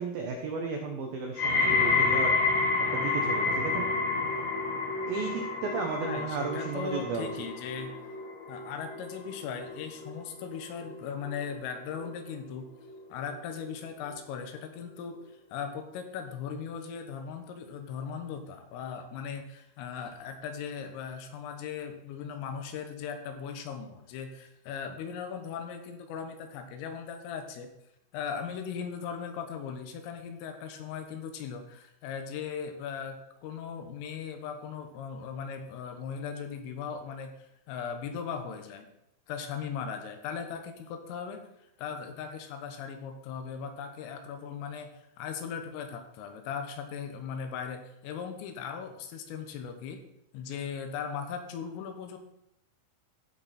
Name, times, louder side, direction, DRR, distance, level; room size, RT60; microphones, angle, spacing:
voice 1, 0.0-2.4 2.9-3.9 5.1-7.3, right 4 dB, 85° right, 2 dB, 2.0 m, -34 dB
sound 1, 1.4-12.5 12.8-13.3 14.1-14.2, left 4 dB, 70° left, 4.3 m, -30 dB
voice 2, 6.0-7.9 8.5-12.7 13.1-15.2 15.5-27.7 28.1-33.2 33.4-37.3 37.7-38.9 39.3-41.5 41.8-44.9 45.2-50.0 50.3-52.2, left 7 dB, 85° left, 6 dB, 3.8 m, -38 dB
15.5 x 6.4 x 4.3 m, 0.82 s
omnidirectional pair, 5.7 m